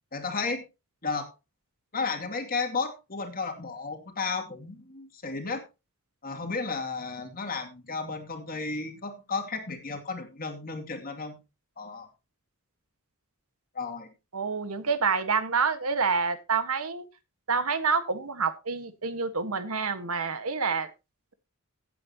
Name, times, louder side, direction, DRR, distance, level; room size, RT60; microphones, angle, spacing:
voice 1, 0.1-0.6 1.0-1.3 1.9-5.6 6.2-11.4 11.8-12.1 13.7-14.1, left 4 dB, 45° left, 4 dB, 2.5 m, -33 dB
voice 2, 14.3-17.0 17.5-20.9, right 5 dB, 80° right, 11 dB, 1.5 m, -27 dB
16.5 x 8.7 x 2.9 m, 0.27 s
head